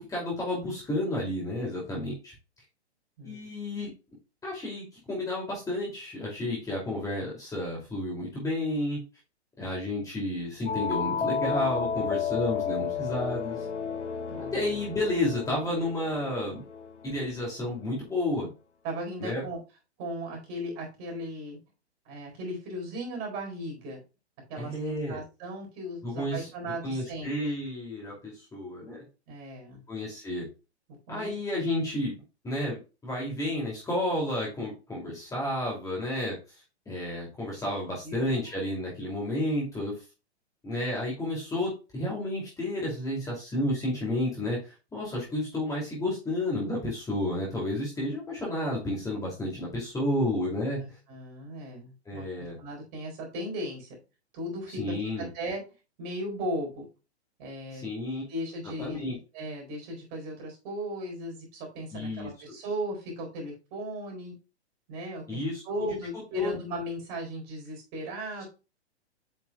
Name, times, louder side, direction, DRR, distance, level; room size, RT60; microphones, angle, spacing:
voice 1, 0.0-2.3 3.2-3.9 4.4-9.0 9.6-13.7 14.5-16.6 17.0-18.5 19.2-19.4 24.6-25.2 26.0-26.5 26.8-29.0 29.9-30.5 31.1-32.2 32.4-36.4 36.9-39.9 40.6-50.8 52.1-52.6 54.7-55.3 57.7-58.2 58.8-59.2 61.9-62.3 65.3-65.9 66.3-66.5, left 1 dB, 10° left, -4 dB, 2.5 m, -31 dB
sound 1, 10.7-17.1, left 6 dB, 85° left, 0.7 m, -32 dB
voice 2, 14.3-14.8 18.8-19.6 20.0-21.6 22.1-24.0 24.5-27.6 29.3-29.8 31.1-31.7 38.0-38.4 38.7-38.8 50.8-54.0 54.3-54.9 55.3-55.6 56.0-56.8 57.4-57.9 58.3-64.3 64.9-65.4 65.6-68.4, equal, 35° right, 0 dB, 4.1 m, -37 dB
8.1 x 5.9 x 2.3 m, 0.29 s
figure-of-eight pair, 115°, 34 cm